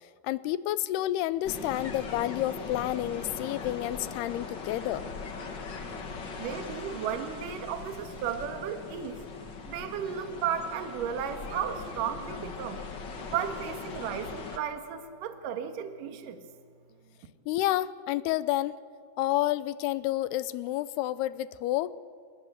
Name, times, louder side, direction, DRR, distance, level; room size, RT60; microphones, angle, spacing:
voice 1, 0.2-5.0 17.5-18.7 19.2-22.0, left 15 dB, 85° left, 17 dB, 2.8 m, -29 dB
sound 1, 1.4-14.6, left 4 dB, 50° left, 1.3 m, -40 dB
voice 2, 6.4-9.2 9.6-12.8 13.3-16.4, right 8 dB, 65° right, 8 dB, 2.9 m, -34 dB
27.5 x 19.0 x 8.0 m, 2.1 s
omnidirectional pair, 4.6 m